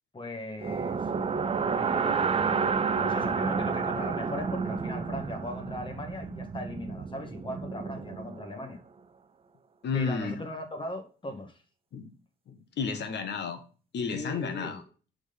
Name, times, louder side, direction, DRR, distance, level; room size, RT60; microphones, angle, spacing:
voice 1, 0.1-1.1 1.7-8.8 9.9-11.6 14.1-14.8, left 1 dB, 25° left, 1.5 m, -39 dB
sound 1, 0.6-8.6, right 5 dB, 30° right, 0.5 m, -30 dB
voice 2, 9.8-10.4 11.9-12.1 12.5-13.6 13.9-14.8, left 5 dB, 60° left, 1.2 m, -32 dB
6.2 x 3.9 x 5.1 m
cardioid pair, 90°, 20 cm